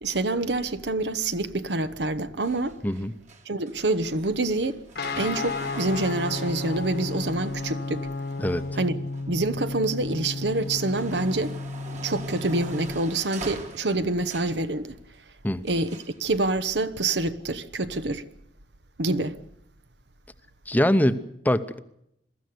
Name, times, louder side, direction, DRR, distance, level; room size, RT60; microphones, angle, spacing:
voice 1, 0.0-2.8 3.5-4.8 5.2-8.1 8.8-9.0 9.3-11.6 12.0-14.9 15.6-18.2 19.0-19.4, right 2 dB, 70° right, 1.1 m, -26 dB
sound 1, 2.4-9.6 10.1-14.7 15.6-16.2 17.1-17.2, right 3 dB, 45° right, 2.1 m, -44 dB
Guitar, 4.9-13.0, left 3 dB, 65° left, 1.5 m, -33 dB
voice 2, 20.7-21.8, left 1 dB, 10° left, 0.9 m, -23 dB
22.5 x 13.5 x 9.5 m
head